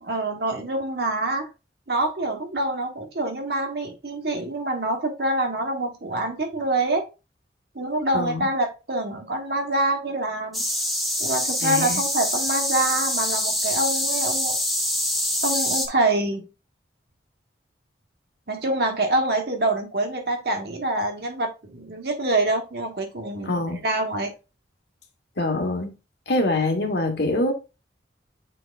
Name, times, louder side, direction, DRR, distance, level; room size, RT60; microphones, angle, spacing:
voice 1, 0.0-1.5 1.9-7.1 7.7-10.6 11.2-14.6 15.4-16.5 18.5-24.3, right 2 dB, 60° right, 1.4 m, -26 dB
voice 2, 8.1-8.5 11.6-12.0 23.4-23.8 25.4-25.9 26.3-27.5, left 2 dB, 70° left, 1.5 m, -24 dB
sound 1, 10.5-15.9, left 1 dB, ahead, 1.1 m, -25 dB
8.6 x 4.4 x 2.5 m
head